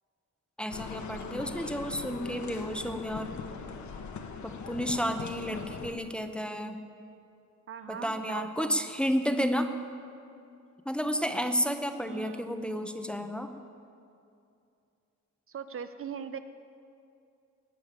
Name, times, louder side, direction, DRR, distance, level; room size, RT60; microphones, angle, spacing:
voice 1, 0.6-3.4 4.4-6.8 7.9-9.7 10.9-13.5, equal, 5° left, 7 dB, 0.7 m, -31 dB
sound 1, 0.7-5.9, left 5 dB, 70° left, 1.3 m, -40 dB
voice 2, 7.7-8.8 12.0-12.4 12.7-12.9 15.5-16.4, right 7 dB, 45° right, 10 dB, 0.5 m, -41 dB
19.5 x 6.9 x 8.8 m, 2.5 s
wide cardioid pair, 180°, 30 cm